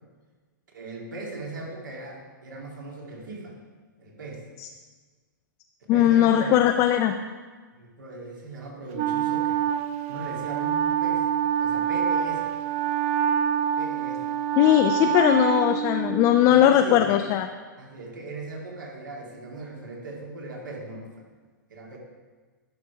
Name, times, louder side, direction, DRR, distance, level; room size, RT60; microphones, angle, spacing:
voice 1, 0.7-3.6 4.0-4.4 5.9-6.6 7.7-9.6 10.1-11.3 11.6-12.5 13.8-14.3 15.0-15.2 16.5-17.1 17.8-21.3 21.7-22.0, right 2 dB, 70° right, -1 dB, 2.1 m, -38 dB
voice 2, 5.9-7.2 14.6-17.5, left 11 dB, 30° left, 6 dB, 0.4 m, -19 dB
Wind instrument woodwind instrument, 9.0-16.5, right 9 dB, 40° right, 0.4 m, -26 dB
12.0 x 5.2 x 4.6 m, 1.4 s
figure-of-eight pair, 115°, 11 cm